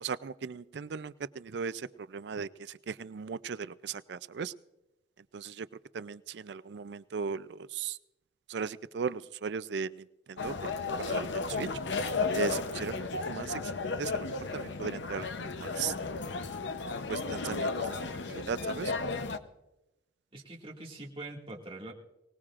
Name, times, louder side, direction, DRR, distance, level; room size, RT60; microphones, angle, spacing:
voice 1, 0.0-4.5 5.3-5.7 5.9-8.0 8.5-11.7 12.3-13.6 14.0-15.9 17.1-18.9, right 6 dB, 65° right, 16 dB, 0.4 m, -37 dB
sound 1, 10.4-19.4, left 4 dB, 85° left, 0.8 m, -34 dB
voice 2, 20.3-21.9, right 2 dB, 30° right, -2 dB, 2.1 m, -43 dB
24.0 x 19.0 x 2.5 m, 0.92 s
head